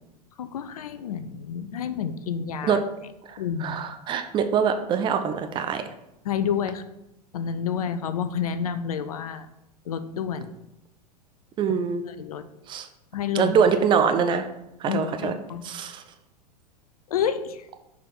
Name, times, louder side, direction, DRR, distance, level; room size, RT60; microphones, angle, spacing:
voice 1, 0.4-2.8 3.4-3.8 6.2-6.8 7.3-9.5 9.9-10.5 12.1-12.4 13.1-13.5 14.9-15.8 17.1-17.7, left 8 dB, 60° left, 11 dB, 0.5 m, -29 dB
voice 2, 3.6-5.8 11.6-12.0 12.7-12.9 13.3-14.5 14.8-15.3 15.6-16.0, right 6 dB, 25° right, 8 dB, 0.5 m, -23 dB
6.6 x 3.6 x 5.4 m, 0.89 s
figure-of-eight pair, 90°, 21 cm